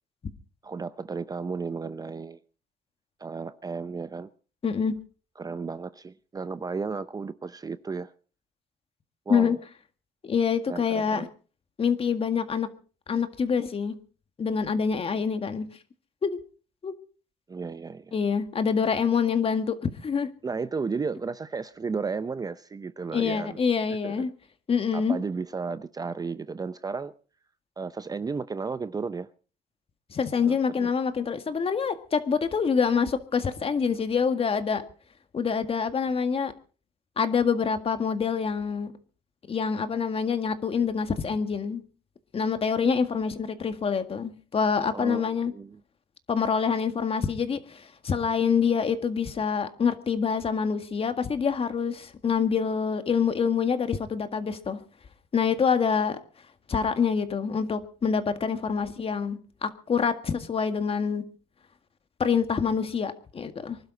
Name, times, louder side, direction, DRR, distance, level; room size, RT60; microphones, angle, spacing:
voice 1, 0.6-2.4 3.2-4.3 5.4-8.1 9.3-9.6 10.7-11.3 17.5-18.1 20.4-23.6 23.9-24.3 24.9-27.1 27.8-29.3 30.4-30.9 44.9-45.8, right 4 dB, 20° right, 0.6 m, -34 dB
voice 2, 4.6-4.9 9.3-9.6 10.2-11.3 11.8-12.7 13.1-14.0 14.4-15.7 16.2-16.4 16.8-16.9 18.1-20.3 23.1-24.3 24.7-25.2 30.1-34.8 35.3-36.5 37.2-38.9 39.5-41.8 42.3-45.5 46.3-54.8 55.3-56.2 56.7-61.2 62.2-63.8, left 6 dB, 35° left, 1.8 m, -26 dB
25.0 x 12.0 x 4.0 m
cardioid pair, 110°, 17 cm